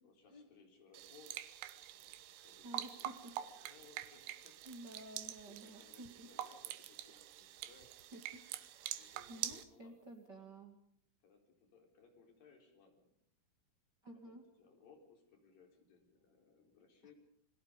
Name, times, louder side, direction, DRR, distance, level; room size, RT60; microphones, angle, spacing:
voice 1, 0.0-4.6 5.5-8.0 9.0-10.5 11.2-13.2 14.3-17.1, left 5 dB, 45° left, 3 dB, 5.3 m, -65 dB
sound 1, 0.9-9.6, right 13 dB, 70° right, 3.3 m, -46 dB
voice 2, 2.6-3.1 4.6-6.3 8.1-8.4 8.7-10.8 14.0-14.4, right 1 dB, 50° right, 2 dB, 1.2 m, -53 dB
30.0 x 21.5 x 5.2 m, 0.68 s
omnidirectional pair, 5.9 m